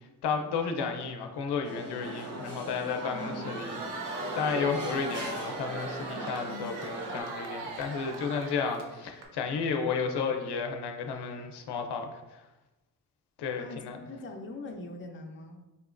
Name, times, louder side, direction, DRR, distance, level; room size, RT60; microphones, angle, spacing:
voice 1, 0.2-3.8 4.3-12.4 13.4-14.0, left 5 dB, 85° left, 4 dB, 0.6 m, -32 dB
sound 1, 1.6-7.2, right 1 dB, 40° right, 0.8 m, -39 dB
voice 2, 3.1-3.4 6.2-6.7 13.6-15.6, left 2 dB, 30° left, 3 dB, 0.5 m, -43 dB
Crowd, 3.2-9.3, right 3 dB, 85° right, 0.6 m, -39 dB
4.3 x 2.9 x 2.4 m, 1.0 s
cardioid pair, 85°, 39 cm